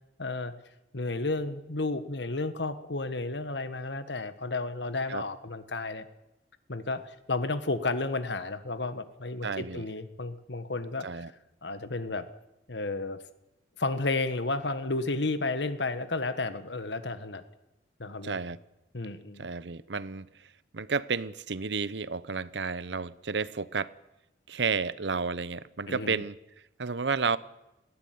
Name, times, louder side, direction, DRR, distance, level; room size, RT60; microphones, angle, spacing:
voice 1, 0.2-0.5 0.9-6.1 6.7-11.2 11.6-12.3 12.7-13.2 13.8-17.4 18.0-18.4 18.9-19.5 25.9-26.2, left 3 dB, 75° left, 1.6 m, -32 dB
voice 2, 9.4-9.8 11.0-11.3 18.2-18.6 19.4-20.3 20.7-23.9 24.5-26.4 26.8-27.4, right 5 dB, 75° right, 0.8 m, -31 dB
20.0 x 16.0 x 9.6 m
head